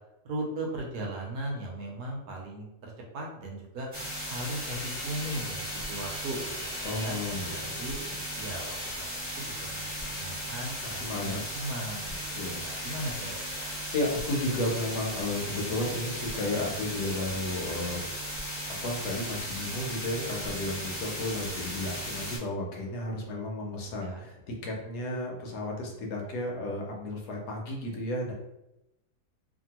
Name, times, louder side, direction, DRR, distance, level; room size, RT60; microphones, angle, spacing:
voice 1, 0.2-3.9 4.3-7.1 7.5-8.0 8.4-9.0 9.4-12.3 12.6-13.8 24.0-24.2, right 1 dB, 70° right, -1 dB, 1.1 m, -38 dB
sound 1, 3.9-22.4, equal, 20° right, 1.2 m, -36 dB
Bowed string instrument, 4.5-9.0, equal, 90° left, 0.3 m, -48 dB
voice 2, 6.8-7.8 10.8-11.4 12.1-12.7 13.9-18.0 18.7-28.3, left 1 dB, 70° left, 0 dB, 1.2 m, -33 dB
2.9 x 2.6 x 2.8 m, 0.89 s
omnidirectional pair, 1.8 m